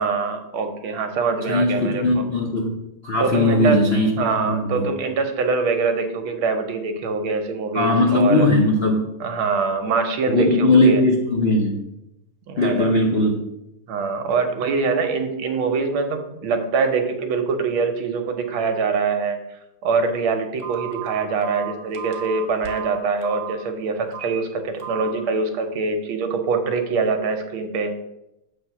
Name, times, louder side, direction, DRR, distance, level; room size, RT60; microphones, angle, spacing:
voice 1, 0.0-2.2 3.2-3.9 4.2-8.5 9.2-11.0 12.5-12.9 13.9-19.4 19.8-27.9, right 4 dB, 80° right, 6 dB, 1.6 m, -24 dB
voice 2, 1.5-2.8 3.0-4.9 7.7-9.1 10.3-11.7 12.6-13.4, left 1 dB, 80° left, 1 dB, 0.5 m, -19 dB
Telephone, 20.6-23.5 24.1-24.4 24.8-25.1, right 10 dB, 55° right, 1.3 m, -33 dB
7.2 x 3.4 x 5.8 m, 0.87 s
omnidirectional pair, 2.3 m